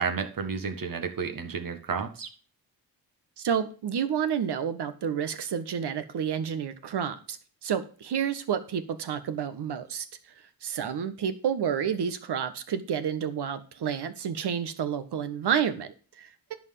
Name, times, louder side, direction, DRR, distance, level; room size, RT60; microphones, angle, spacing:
voice 1, 0.0-2.3, right 5 dB, 55° right, 6 dB, 1.9 m, -31 dB
voice 2, 3.4-7.4 7.6-10.0 10.6-16.3, right 8 dB, 80° right, 11 dB, 1.5 m, -30 dB
11.0 x 4.8 x 7.6 m, 0.37 s
cardioid pair, 85°, 39 cm